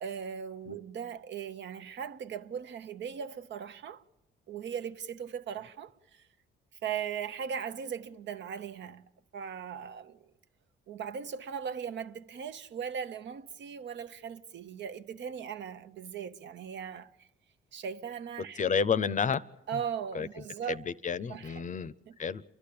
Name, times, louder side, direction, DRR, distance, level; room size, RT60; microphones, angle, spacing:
voice 1, 0.0-4.0 4.5-6.3 6.8-10.2 10.9-17.3 17.7-18.6 19.7-20.9 21.3-21.6 22.1-22.2, right 7 dB, 65° right, 0.9 m, -38 dB
voice 2, 18.6-19.4 19.7-19.8 20.1-20.3 20.7-21.9 22.2-22.4, left 6 dB, 40° left, 0.6 m, -30 dB
30.0 x 12.0 x 8.5 m
cardioid pair, 90°, 20 cm